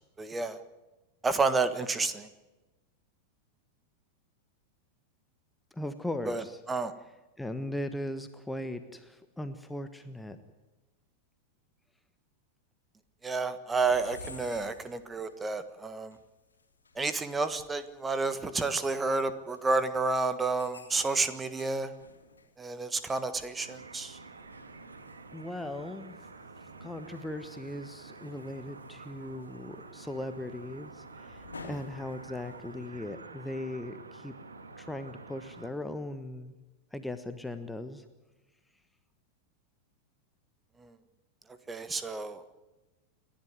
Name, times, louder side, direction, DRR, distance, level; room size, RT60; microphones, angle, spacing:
voice 1, 0.2-0.6 1.2-2.3 6.3-6.9 13.2-16.2 16.9-21.9 22.6-24.2 40.8-40.9 41.7-42.5, right 3 dB, 15° right, 12 dB, 1.5 m, -30 dB
voice 2, 5.7-6.6 7.4-10.4 25.3-26.2 26.8-34.3 34.8-36.5 36.9-38.0, left 1 dB, 5° left, 9 dB, 1.3 m, -38 dB
sound 1, 13.8-15.4 16.1-16.2 16.6-17.1 17.4-18.5 19.1-19.2 19.5-19.6 20.3-22.5 24.1-24.2 24.4-25.7 26.1-32.9, left 3 dB, 75° left, 2.8 m, -52 dB
sound 2, 23.6-35.7, right 3 dB, 75° right, 2.1 m, -49 dB
29.5 x 11.5 x 9.5 m, 1.1 s
figure-of-eight pair, 90°, 0 cm